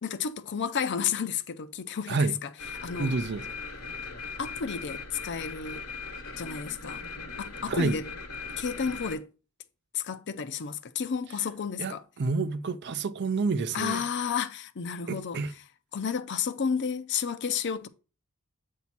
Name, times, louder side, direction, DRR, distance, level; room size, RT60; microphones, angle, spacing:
voice 1, 0.0-2.5 2.8-3.1 4.4-5.8 6.4-7.0 7.4-8.0 8.6-9.3 9.9-12.0 13.7-15.4 15.9-17.9, left 6 dB, 50° left, 0.5 m, -31 dB
sound 1, 2.6-9.1, left 4 dB, 65° left, 1.1 m, -39 dB
voice 2, 3.0-3.5 7.7-8.0 11.8-14.0 15.1-15.5, right 4 dB, 50° right, 0.5 m, -29 dB
8.3 x 2.8 x 5.8 m
head